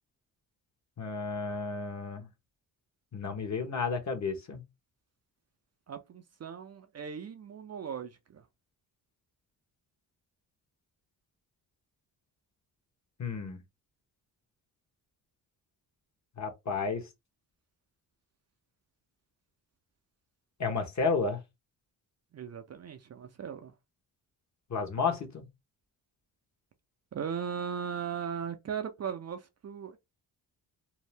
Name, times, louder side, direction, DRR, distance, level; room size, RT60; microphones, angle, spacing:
voice 1, 1.0-2.3 3.1-4.6 13.2-13.6 16.4-17.1 20.6-21.4 24.7-25.4, left 4 dB, 45° left, 1.0 m, -32 dB
voice 2, 5.9-8.5 22.3-23.7 27.1-30.0, right 7 dB, 40° right, 0.5 m, -38 dB
2.7 x 2.0 x 3.2 m
cardioid pair, 75°, 40 cm